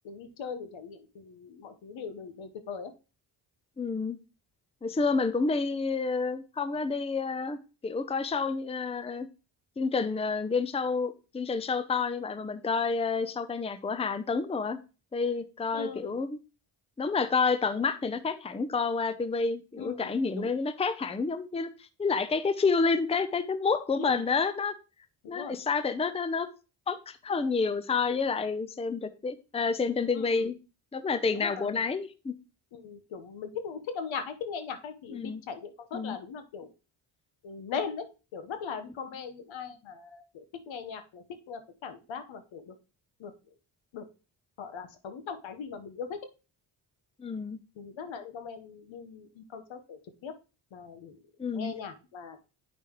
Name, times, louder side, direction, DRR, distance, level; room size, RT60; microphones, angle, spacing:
voice 1, 0.0-2.9 15.7-16.1 19.8-20.5 24.0-24.2 25.2-25.5 30.1-30.5 31.4-31.8 32.7-36.7 37.4-38.0 38.3-42.7 43.2-43.3 43.9-44.0 44.6-46.2 47.8-50.3 50.7-51.2 51.5-52.4, left 6 dB, 65° left, 9 dB, 1.2 m, -40 dB
voice 2, 3.8-4.2 4.8-9.3 9.8-14.8 15.1-16.4 17.0-21.7 22.0-24.7 25.3-26.5 26.9-30.5 30.9-32.4 35.1-35.4 35.9-36.2 47.2-47.6 51.4-51.7, left 4 dB, 10° left, 13 dB, 0.6 m, -29 dB
8.6 x 5.5 x 3.0 m, 0.32 s
supercardioid pair, 55°, 49 cm